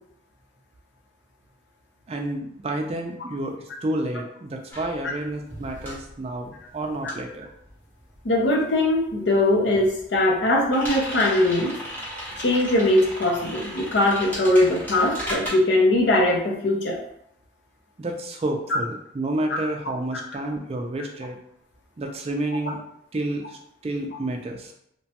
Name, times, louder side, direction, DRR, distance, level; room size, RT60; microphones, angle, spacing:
voice 1, 2.1-3.5 3.8-7.5 18.0-21.4 22.0-22.8 23.1-24.7, right 1 dB, 35° right, 3 dB, 0.3 m, -30 dB
sound 1, 4.7-8.5 8.8-15.5, equal, 10° left, 0.8 m, -36 dB
voice 2, 8.2-11.7 12.4-17.0 18.7-18.8 19.5-19.6 20.1-20.2, left 1 dB, 75° left, -1 dB, 0.6 m, -21 dB
2.9 x 2.2 x 2.8 m, 0.73 s
head